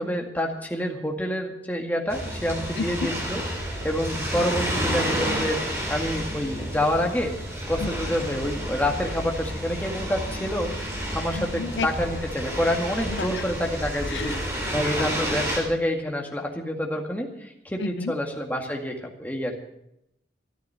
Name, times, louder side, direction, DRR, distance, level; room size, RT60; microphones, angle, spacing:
voice 1, 0.0-7.3 7.7-14.4 14.7-19.5, equal, 10° left, 1 dB, 2.0 m, -28 dB
sound 1, 2.1-15.6, equal, 15° right, 3.7 m, -30 dB
voice 2, 2.8-3.1 7.8-7.9 11.4-11.9 13.1-13.4 14.1-14.4 17.8-18.1, left 4 dB, 85° left, 14 dB, 0.6 m, -31 dB
13.5 x 12.5 x 7.0 m, 0.80 s
head